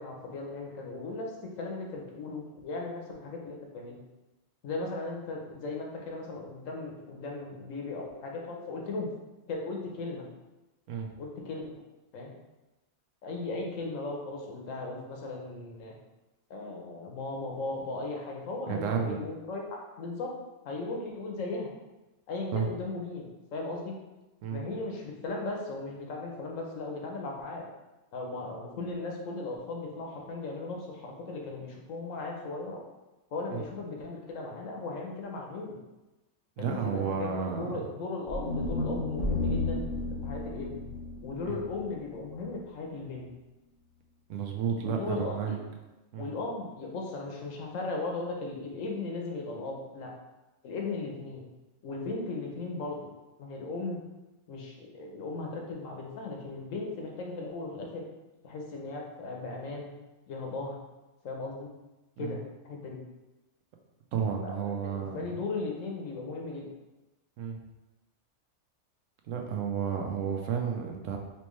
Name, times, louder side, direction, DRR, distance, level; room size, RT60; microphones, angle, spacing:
voice 1, 0.0-4.0 4.6-9.1 9.5-10.2 11.2-11.8 12.1-12.4 13.2-15.9 16.5-20.3 20.6-21.7 22.3-23.2 23.5-23.9 24.5-27.7 28.1-32.8 33.3-35.8 36.6-40.8 41.2-43.3 44.8-45.6 46.2-50.1 50.6-51.4 51.8-53.0 53.4-54.0 54.5-58.0 58.4-59.9 60.3-60.8 61.2-61.7 62.2-63.0 64.4-66.7, left 3 dB, 85° left, 0 dB, 1.2 m, -37 dB
voice 2, 18.7-19.2 22.5-22.7 24.4-24.6 33.5-33.6 36.6-37.8 41.5-41.6 44.3-45.6 46.1-46.3 62.2-62.4 64.1-65.3 67.4-67.6 69.3-71.2, right 7 dB, 80° right, 3 dB, 1.0 m, -32 dB
sound 1, 38.3-42.5, left 2 dB, 50° left, 0.7 m, -33 dB
4.3 x 2.9 x 3.1 m, 1.1 s
omnidirectional pair, 1.3 m